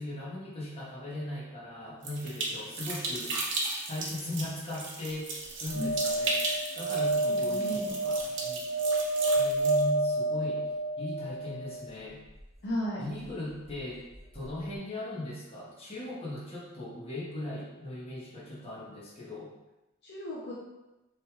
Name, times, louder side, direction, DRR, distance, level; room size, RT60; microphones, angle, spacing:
voice 1, 0.0-3.4 3.9-5.3 5.6-6.4 6.7-8.7 9.3-10.6 11.0-12.2 13.0-14.0 14.3-19.5, left 1 dB, 30° left, -5 dB, 1.2 m, -38 dB
sound 1, 2.0-9.9, right 3 dB, 60° right, 0.9 m, -36 dB
sound 2, 5.7-11.9 14.1-14.2 14.4-14.5, right 2 dB, 30° right, 1.1 m, -29 dB
voice 2, 7.3-8.0 12.6-13.1 20.0-20.5, equal, 55° left, -5 dB, 0.7 m, -35 dB
6.5 x 3.2 x 2.4 m, 1.0 s
head